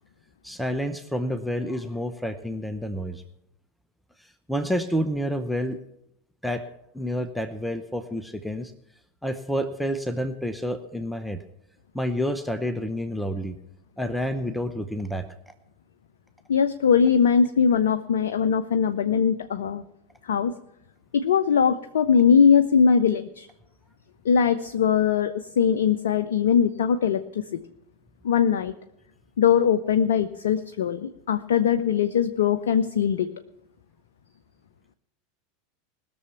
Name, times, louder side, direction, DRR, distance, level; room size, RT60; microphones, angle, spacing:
voice 1, 0.4-3.2 4.5-5.8 6.4-6.6 6.9-8.7 9.2-11.4 11.9-13.6 14.0-15.3, equal, ahead, 10 dB, 0.8 m, -29 dB
voice 2, 16.5-19.8 20.2-20.5 21.1-23.5 24.2-27.6 28.2-28.7 29.4-33.3, left 7 dB, 65° left, 10 dB, 0.5 m, -21 dB
20.0 x 6.9 x 5.8 m, 0.81 s
figure-of-eight pair, 85°, 0 cm